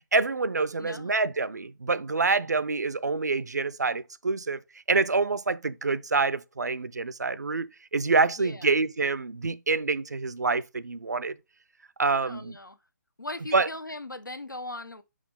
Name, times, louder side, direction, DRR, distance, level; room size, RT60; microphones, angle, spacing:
voice 1, 0.1-4.6 4.9-11.3 12.0-12.6 13.5-13.7, right 3 dB, 60° right, 0.6 m, -26 dB
voice 2, 0.8-1.1 8.4-8.7 12.3-12.8 13.2-15.0, left 2 dB, 80° left, 1.0 m, -39 dB
6.3 x 5.6 x 3.6 m
figure-of-eight pair, 150°, 10 cm